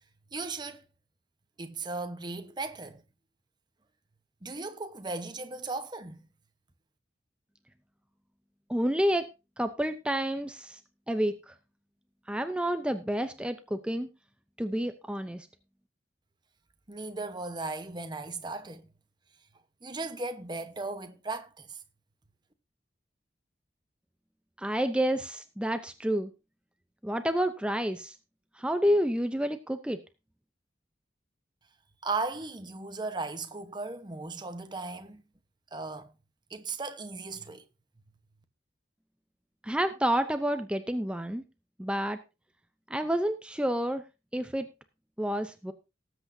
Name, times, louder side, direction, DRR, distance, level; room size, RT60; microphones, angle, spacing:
voice 1, 0.3-0.8 1.6-3.0 4.4-6.2 16.9-18.8 19.8-21.8 32.0-35.2 35.7-36.1 36.5-37.6, right 3 dB, 25° right, 1.0 m, -36 dB
voice 2, 8.7-9.3 9.6-10.8 11.1-11.5 12.3-14.1 14.6-15.5 24.6-26.3 27.0-28.1 28.6-30.0 39.6-41.4 41.8-42.2 42.9-44.0 44.3-44.7 45.2-45.7, equal, 5° right, 0.6 m, -29 dB
19.0 x 8.1 x 2.7 m
head